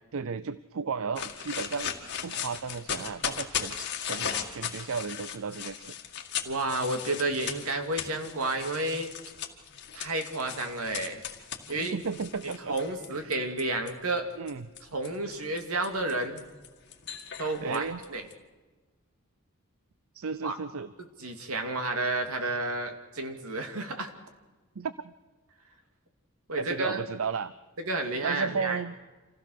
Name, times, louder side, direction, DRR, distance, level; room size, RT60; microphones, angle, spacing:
voice 1, 0.1-1.9 2.2-5.9 11.9-12.8 13.1-13.4 14.4-14.7 17.6-18.0 20.1-20.9 24.8-25.1 26.6-27.5 28.2-28.9, right 5 dB, 70° right, 15 dB, 0.5 m, -34 dB
sound 1, 1.2-13.9 14.5-18.3, left 8 dB, 50° left, 2.0 m, -37 dB
voice 2, 6.5-9.1 9.9-11.2 11.7-12.0 12.7-14.3 14.9-16.4 17.4-18.3 20.4-20.6 21.2-24.1 26.5-27.0 27.8-28.8, right 2 dB, 85° right, 5 dB, 2.5 m, -31 dB
26.5 x 16.0 x 6.5 m, 1.3 s
head